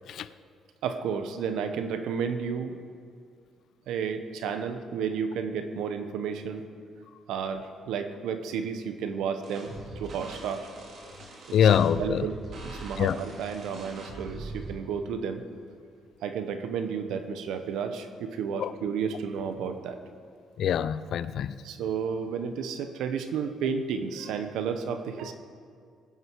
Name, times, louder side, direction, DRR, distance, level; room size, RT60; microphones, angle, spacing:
voice 1, 0.8-2.8 3.9-6.7 7.3-10.7 11.5-11.6 12.0-15.4 16.2-20.0 21.6-25.3, right 6 dB, 85° right, 8 dB, 1.0 m, -32 dB
sound 1, 9.4-14.7, right 2 dB, 55° right, 3.0 m, -42 dB
voice 2, 11.5-12.3 13.0-13.2 18.6-18.7 20.6-21.6, left 8 dB, 65° left, 15 dB, 0.5 m, -24 dB
20.5 x 9.5 x 4.7 m, 2.2 s
cardioid pair, 120°, 0 cm